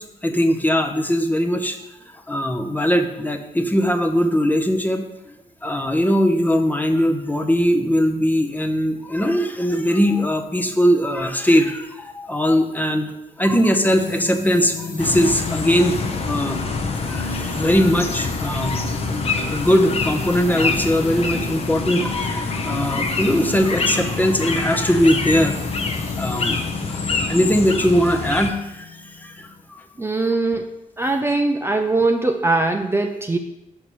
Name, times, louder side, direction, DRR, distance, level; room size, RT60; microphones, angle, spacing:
voice 1, 0.0-1.8 2.3-5.3 5.6-13.1 13.4-16.0 16.3-25.6 26.2-26.6 26.9-28.9 29.2-29.8, equal, 10° left, 5 dB, 0.8 m, -20 dB
sound 1, 13.9-29.6, left 2 dB, 75° left, 1.4 m, -33 dB
sound 2, 15.0-28.5, left 4 dB, 45° left, 0.8 m, -26 dB
voice 2, 30.0-30.7 31.0-33.4, right 2 dB, 15° right, 3 dB, 0.5 m, -21 dB
5.8 x 5.4 x 4.6 m, 0.90 s
cardioid pair, 75°, 14 cm